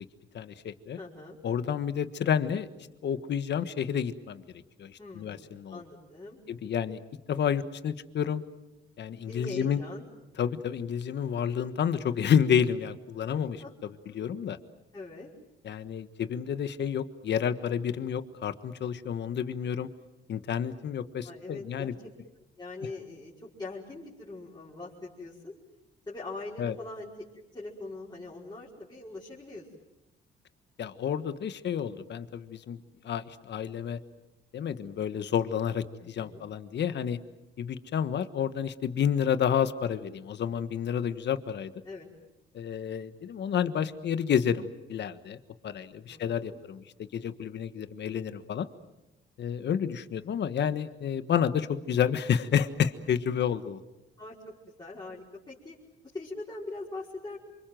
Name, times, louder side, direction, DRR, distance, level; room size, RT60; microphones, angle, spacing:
voice 1, 0.3-1.0 1.4-2.7 3.0-5.8 6.5-7.0 7.3-8.4 9.0-9.8 10.4-14.6 15.6-19.9 20.3-21.9 26.6-26.7 30.8-32.8 33.0-34.0 34.5-37.2 37.6-41.7 42.5-45.4 45.6-48.7 49.4-53.8, left 8 dB, 60° left, 12 dB, 1.5 m, -30 dB
voice 2, 1.0-1.4 5.0-6.4 9.3-10.0 13.3-13.7 14.1-14.2 14.9-15.3 21.2-22.1 22.6-25.5 26.1-27.1 27.5-29.7 36.0-36.4 41.9-42.1 46.1-46.6 54.2-54.4 54.8-55.8 56.1-57.4, left 2 dB, 20° left, -6 dB, 5.3 m, -42 dB
27.5 x 25.0 x 7.7 m, 0.97 s
cardioid pair, 90°, 20 cm